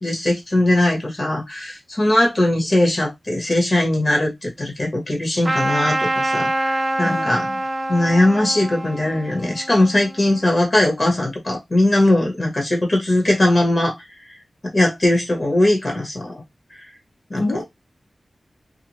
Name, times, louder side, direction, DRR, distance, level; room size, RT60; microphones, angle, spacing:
voice 1, 0.0-7.4 7.9-14.0 14.3-14.4 14.7-16.4 17.3-17.4, left 1 dB, 40° left, 1.1 m, -19 dB
Trumpet, 5.4-10.5, right 1 dB, 25° right, 0.5 m, -25 dB
voice 2, 7.0-7.6 17.4-17.6, left 2 dB, 85° left, 1.3 m, -26 dB
2.5 x 2.3 x 2.9 m
wide cardioid pair, 100°, 0 cm